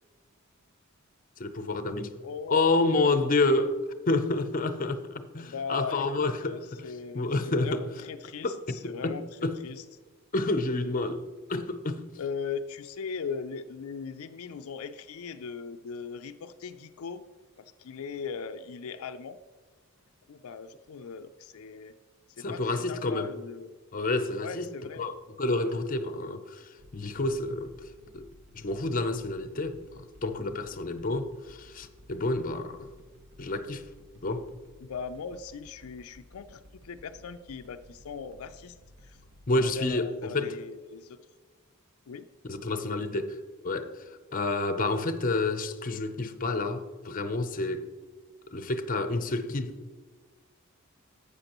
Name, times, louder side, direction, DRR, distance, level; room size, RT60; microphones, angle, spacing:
voice 1, 1.4-2.1 2.5-3.8 4.1-7.8 8.4-9.6 10.3-12.1 22.4-23.3 23.9-24.7 25.0-27.7 28.1-28.3 28.5-32.9 33.4-33.8 34.2-34.5 39.5-40.6 42.5-43.4 43.6-44.0 44.3-47.9 48.5-49.8, left 2 dB, 40° left, 0.6 m, -29 dB
voice 2, 2.2-3.1 5.4-9.8 12.2-17.2 17.6-19.4 20.3-21.9 22.4-23.7 24.4-25.1 34.8-38.8 39.0-39.2 39.7-41.2 42.1-42.3, left 5 dB, 80° left, 0.4 m, -39 dB
sound 1, 26.8-39.9, equal, 75° right, 1.5 m, -55 dB
11.5 x 8.3 x 3.0 m
head